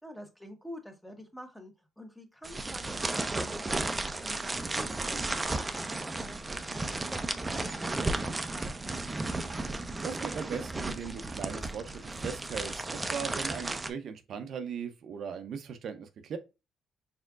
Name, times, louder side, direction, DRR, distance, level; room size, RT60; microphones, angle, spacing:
voice 1, 0.0-9.0, equal, 5° left, 1.2 m, -48 dB
sound 1, 2.4-13.9, right 2 dB, 20° right, 0.6 m, -34 dB
voice 2, 10.0-16.4, right 6 dB, 65° right, 0.6 m, -39 dB
4.5 x 3.5 x 2.4 m
cardioid pair, 90°, 0 cm